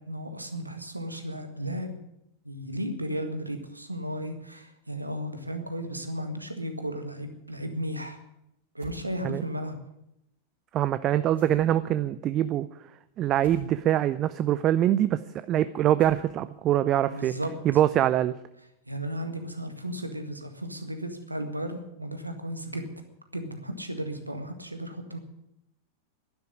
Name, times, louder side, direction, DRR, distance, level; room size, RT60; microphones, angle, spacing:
voice 1, 0.1-2.0 2.5-8.2 8.7-9.8 17.1-17.5 18.9-22.9 23.3-25.2, equal, 85° right, 7 dB, 1.8 m, -34 dB
sound 1, 8.8-9.0 11.4-11.9 13.4-13.7 16.0-16.5, left 1 dB, 70° right, 3.9 m, -47 dB
voice 2, 10.7-12.7 13.2-15.2 15.5-17.4 17.6-18.4, right 12 dB, 35° right, 14 dB, 0.5 m, -24 dB
12.0 x 11.0 x 9.9 m, 0.81 s
figure-of-eight pair, 90°, 0 cm